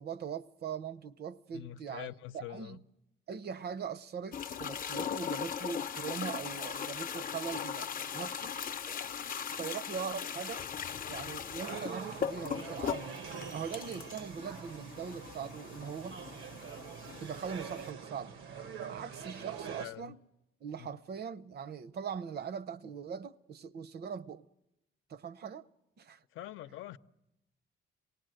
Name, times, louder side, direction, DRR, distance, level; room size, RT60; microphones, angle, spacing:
voice 1, 0.0-2.1 2.3-2.8 3.3-8.5 9.6-10.6 11.1-13.2 13.5-16.3 17.2-18.4 18.9-20.2 20.6-24.5 25.1-25.6 26.0-26.2, right 7 dB, 55° right, 0.7 m, -41 dB
voice 2, 1.5-2.8 19.8-20.1 20.7-21.0 26.3-27.0, left 13 dB, 80° left, 0.7 m, -45 dB
sound 1, 4.3-17.9, left 8 dB, 45° left, 0.7 m, -39 dB
sound 2, 11.6-19.9, right 6 dB, 90° right, 1.2 m, -44 dB
26.0 x 18.5 x 7.7 m
cardioid pair, 90°, 20 cm